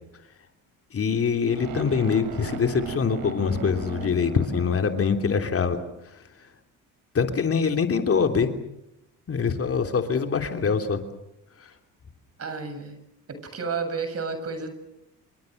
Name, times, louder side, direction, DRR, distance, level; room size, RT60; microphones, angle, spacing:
voice 1, 0.9-6.2 7.1-8.5 9.3-11.0 11.6-11.7, left 6 dB, 40° left, 6 dB, 3.2 m, -24 dB
sound 1, 1.5-5.6, right 7 dB, 75° right, 4.6 m, -38 dB
voice 2, 12.4-13.0 13.3-14.7, right 4 dB, 45° right, 8 dB, 7.6 m, -31 dB
29.0 x 25.5 x 6.6 m, 0.84 s
supercardioid pair, 75°, 34 cm